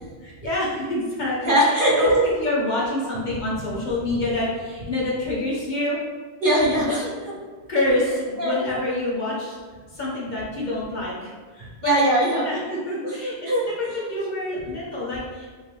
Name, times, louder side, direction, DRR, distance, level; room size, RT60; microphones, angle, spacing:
voice 1, 0.2-2.1 2.4-6.0 6.8-6.9 7.7-9.6 9.9-11.9 12.4-13.3 13.8-15.5, left 1 dB, 45° left, -6 dB, 1.2 m, -27 dB
voice 2, 1.4-2.3 6.4-7.1 8.4-8.6 11.8-12.5 13.0-14.1, right 1 dB, 55° right, -4 dB, 0.9 m, -21 dB
5.3 x 2.8 x 3.3 m, 1.5 s
omnidirectional pair, 1.1 m